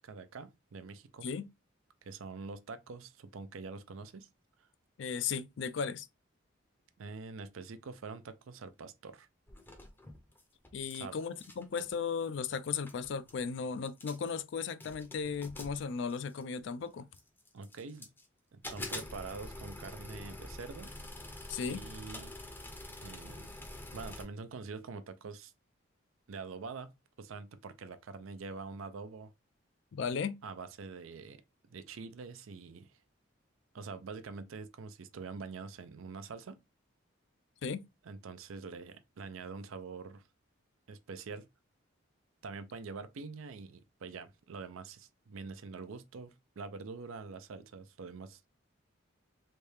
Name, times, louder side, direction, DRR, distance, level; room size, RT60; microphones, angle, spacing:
voice 1, 0.0-1.3 2.0-4.3 7.0-9.3 10.9-11.2 17.5-18.1 18.5-20.9 21.7-22.3 23.0-23.6 23.9-25.5 26.3-29.3 30.4-31.4 31.7-33.0 33.7-36.6 38.0-40.2 40.9-41.5 42.4-48.4, right 4 dB, 80° right, 0.5 m, -45 dB
voice 2, 5.0-6.1 10.7-17.1 21.5-21.8 29.9-30.4 37.6-37.8, left 6 dB, 60° left, 0.3 m, -36 dB
sound 1, 9.5-10.9 11.2-11.9 12.6-12.7 12.9-13.4 13.8-14.4 14.8-16.6 17.1-18.3 18.6-24.3, left 2 dB, 10° left, 0.6 m, -46 dB
3.3 x 2.7 x 3.2 m
head